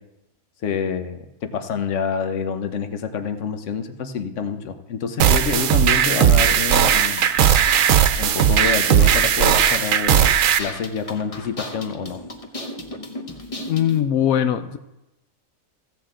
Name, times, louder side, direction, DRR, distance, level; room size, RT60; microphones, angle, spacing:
voice 1, 0.6-7.3 8.2-12.2, left 6 dB, 65° left, 8 dB, 1.2 m, -27 dB
sound 1, 5.2-10.6, right 9 dB, 75° right, 1.0 m, -17 dB
sound 2, 6.2-14.0, left 2 dB, 30° left, 1.0 m, -36 dB
voice 2, 13.7-14.8, left 10 dB, 90° left, 10 dB, 1.0 m, -20 dB
15.5 x 8.1 x 3.8 m, 0.94 s
omnidirectional pair, 1.4 m